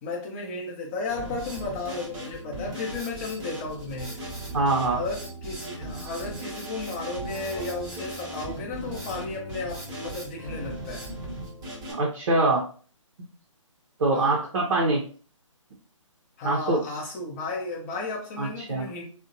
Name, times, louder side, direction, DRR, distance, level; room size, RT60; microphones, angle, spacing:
voice 1, 0.0-4.2 4.9-11.0 14.1-14.4 16.4-19.0, left 3 dB, 25° left, -1 dB, 0.7 m, -34 dB
Drum kit, 1.1-11.9, right 1 dB, 15° right, 0.7 m, -37 dB
voice 2, 4.5-5.0 11.9-12.6 14.0-15.0 16.4-16.8 18.4-18.8, right 2 dB, 50° right, -1 dB, 0.6 m, -23 dB
2.5 x 2.1 x 2.6 m, 0.41 s
figure-of-eight pair, 140°, 17 cm